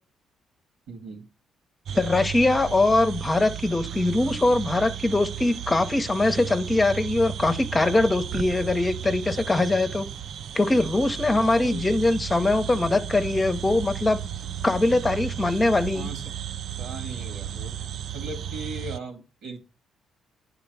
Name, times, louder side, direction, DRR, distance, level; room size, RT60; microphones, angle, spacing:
voice 1, 0.9-1.2 11.3-11.8 15.9-16.2 16.8-17.7 18.1-19.6, right 3 dB, 85° right, 2.3 m, -38 dB
voice 2, 1.9-10.0 10.5-14.2 14.6-16.1, left 2 dB, 20° left, 0.9 m, -22 dB
sound 1, 1.9-19.0, right 9 dB, 65° right, 0.3 m, -34 dB
9.8 x 3.8 x 4.8 m
cardioid pair, 90°, 0 cm